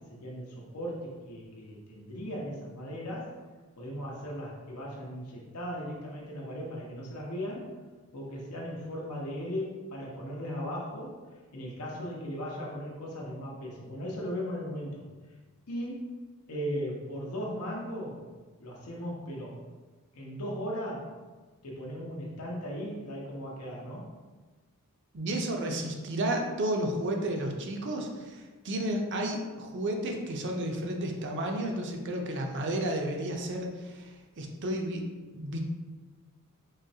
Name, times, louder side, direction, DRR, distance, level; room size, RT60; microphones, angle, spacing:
voice 1, 0.1-3.3 3.8-7.7 8.1-11.1 11.5-15.0 15.7-16.1 16.5-18.2 18.6-19.6 20.1-21.1 21.6-24.1, equal, 85° left, -3 dB, 0.7 m, -37 dB
voice 2, 25.1-34.1 34.4-35.0 35.3-35.6, right 1 dB, 55° right, 3 dB, 0.5 m, -32 dB
3.8 x 3.0 x 2.7 m, 1.3 s
head